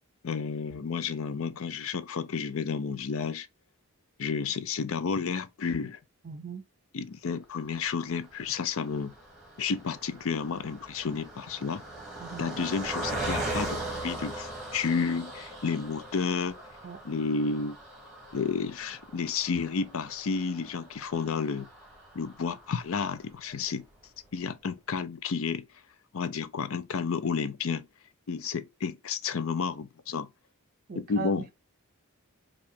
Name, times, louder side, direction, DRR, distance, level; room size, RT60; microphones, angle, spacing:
voice 1, 0.2-3.5 4.2-6.0 6.9-9.1 9.6-11.8 12.4-16.5 17.0-17.8 18.3-21.7 22.1-23.9 24.3-25.7 26.1-27.9 28.3-30.3 31.0-31.5, left 5 dB, 65° left, 0.5 m, -31 dB
voice 2, 6.2-6.6 12.2-12.6 16.8-17.0 30.9-31.5, right 5 dB, 40° right, 0.4 m, -39 dB
Car passing by, 7.9-23.4 23.9-24.0 24.2-24.4, right 1 dB, ahead, 1.4 m, -40 dB
4.6 x 2.5 x 3.5 m
head